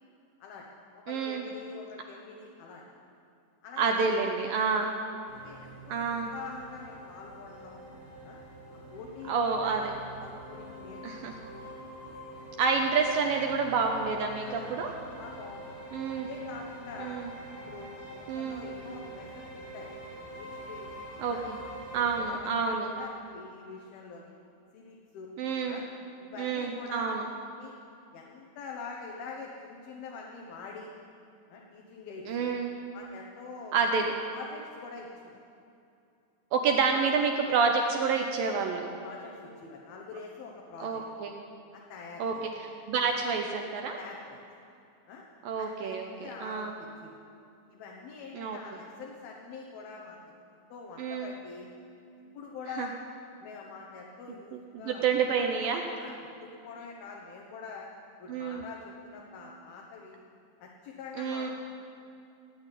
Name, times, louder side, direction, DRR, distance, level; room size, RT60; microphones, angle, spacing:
voice 1, 0.4-2.8 3.6-4.1 4.4-4.8 5.3-7.8 8.2-8.4 8.9-9.9 10.2-11.4 12.4-12.5 13.0-13.2 14.4-15.8 16.1-17.2 17.7-19.9 20.4-20.9 21.3-21.5 21.9-24.4 24.7-25.3 25.7-25.9 26.2-27.2 27.5-27.7 28.1-30.9 31.5-32.5 32.9-33.9 34.3-35.4 36.6-36.7 39.0-41.0 41.7-42.5 43.1-43.2 44.0-44.4 45.1-45.3 45.6-47.2 47.7-50.2 50.5-51.7 52.2-52.9 53.4-55.1 55.9-57.9 58.2-60.2 60.6-61.5, left 4 dB, 70° left, -2 dB, 2.9 m, -45 dB
voice 2, 1.1-1.4 3.8-4.9 5.9-6.3 9.3-9.9 11.0-11.3 12.6-14.9 15.9-16.3 17.0-17.3 18.3-18.6 21.2-21.6 21.9-22.9 25.4-25.8 26.4-27.2 32.3-32.7 33.7-34.1 36.5-38.9 40.8-41.3 42.2-42.3 42.9-44.0 45.5-46.7 48.3-48.6 51.0-51.3 52.8-52.9 54.5-55.8 58.3-58.6 61.2-61.5, right 5 dB, 75° right, 2 dB, 2.2 m, -28 dB
sound 1, 5.3-22.2, right 1 dB, 85° left, 7.1 m, -46 dB
16.5 x 8.7 x 9.8 m, 2.6 s
omnidirectional pair, 5.0 m